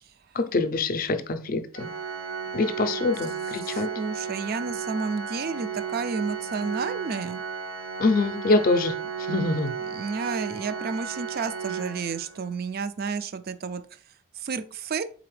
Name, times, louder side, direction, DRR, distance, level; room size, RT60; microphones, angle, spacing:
voice 1, 0.3-1.9 2.5-3.9 8.0-8.9 9.3-9.7, left 3 dB, 45° left, 0.5 m, -24 dB
Organ, 1.7-12.6, right 6 dB, 80° right, 0.7 m, -34 dB
voice 2, 3.6-7.4 9.9-13.8 14.4-15.0, right 5 dB, 50° right, 0.4 m, -31 dB
4.1 x 3.8 x 3.1 m
head